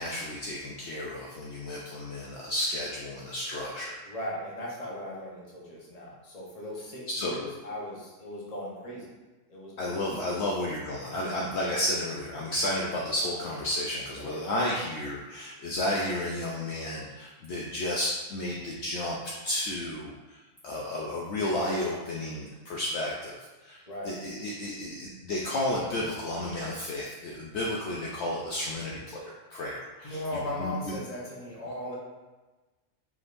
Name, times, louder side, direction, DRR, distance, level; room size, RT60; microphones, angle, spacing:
voice 1, 0.0-3.9 7.1-7.4 9.8-19.2 19.4-20.4 20.6-23.4 23.6-23.8 24.0-30.2 30.6-31.0, left 1 dB, 65° left, -3 dB, 0.8 m, -32 dB
voice 2, 4.0-9.1 9.5-10.2 14.3-14.4 14.7-14.8 23.9-24.1 30.0-32.0, left 1 dB, 30° left, -5 dB, 1.0 m, -38 dB
4.8 x 3.6 x 2.5 m, 1.2 s
omnidirectional pair, 1.3 m